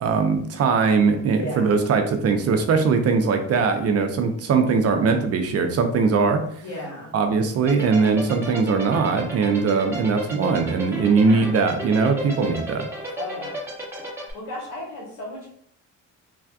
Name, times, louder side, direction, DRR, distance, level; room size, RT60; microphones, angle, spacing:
voice 1, 0.0-6.4 7.1-12.9, right 5 dB, 55° right, 6 dB, 0.5 m, -20 dB
voice 2, 1.4-1.7 6.6-7.1 11.2-11.6 13.2-13.5 14.3-15.5, left 1 dB, 90° left, -2 dB, 1.2 m, -34 dB
sound 1, 7.7-14.3, right 1 dB, 10° right, 0.9 m, -32 dB
3.3 x 2.4 x 2.3 m, 0.64 s
cardioid pair, 90°, 30 cm